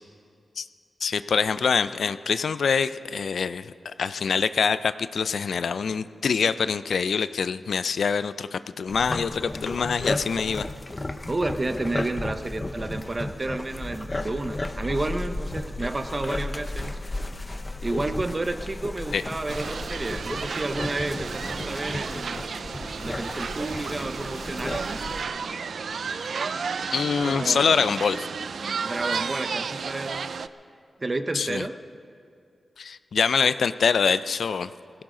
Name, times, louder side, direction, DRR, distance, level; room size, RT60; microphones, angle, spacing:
voice 1, 1.0-10.7 19.1-19.2 26.9-28.3 31.3-31.7 32.8-34.7, left 6 dB, 75° left, 13 dB, 0.4 m, -25 dB
sound 1, 8.9-25.2, left 2 dB, 25° left, 0.8 m, -34 dB
voice 2, 11.3-17.0 17.8-22.4 23.0-25.0 27.2-27.7 28.8-30.3 31.0-31.8, right 2 dB, 30° right, 9 dB, 0.7 m, -31 dB
sound 2, 19.5-30.5, right 5 dB, 70° right, 0.4 m, -32 dB
20.5 x 16.5 x 3.8 m, 2.4 s
wide cardioid pair, 105°, 0 cm